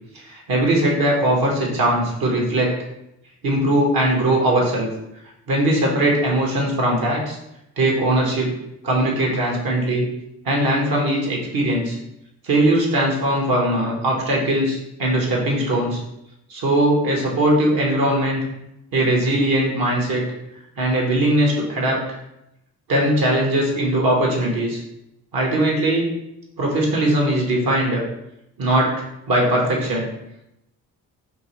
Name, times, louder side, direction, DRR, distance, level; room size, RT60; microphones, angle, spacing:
voice 1, 0.1-2.7 3.4-4.9 5.5-7.4 7.8-8.5 8.8-10.1 10.4-12.0 12.4-16.0 16.5-18.4 18.9-20.2 20.8-22.0 22.9-24.8 25.3-26.1 26.6-28.0 28.6-28.9 29.3-30.1, right 1 dB, 55° right, -1 dB, 1.2 m, -20 dB
3.7 x 2.7 x 3.1 m, 0.85 s
hypercardioid pair, 40°, 43 cm